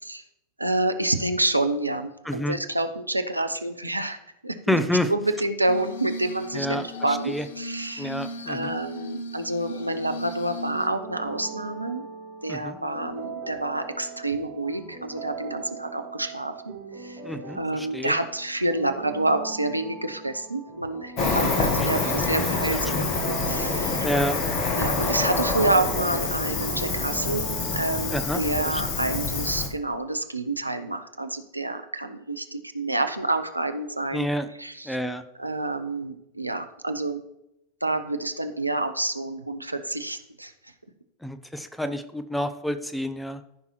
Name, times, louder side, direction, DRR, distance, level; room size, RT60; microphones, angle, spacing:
voice 1, 0.6-4.2 4.4-4.8 5.1-8.2 8.5-12.1 12.4-17.2 17.5-24.1 24.7-27.5 27.7-34.3 34.6-35.0 35.4-37.2 37.8-40.7, right 2 dB, 85° right, 8 dB, 0.6 m, -28 dB
voice 2, 2.3-2.6 4.7-5.1 6.5-6.8 7.3-7.5 8.0-8.7 12.5-12.8 17.2-18.1 21.8-22.2 24.0-24.4 28.1-28.4 34.1-34.5 34.8-35.2 41.2-43.4, left 1 dB, 5° left, 11 dB, 0.6 m, -28 dB
Glass, 5.7-10.9, left 1 dB, 60° left, 0.6 m, -36 dB
sound 1, 9.7-29.2, right 5 dB, 45° right, 3.2 m, -40 dB
Cricket, 21.2-29.7, left 3 dB, 40° left, 1.2 m, -26 dB
14.0 x 5.5 x 3.1 m, 0.85 s
figure-of-eight pair, 90°, 0 cm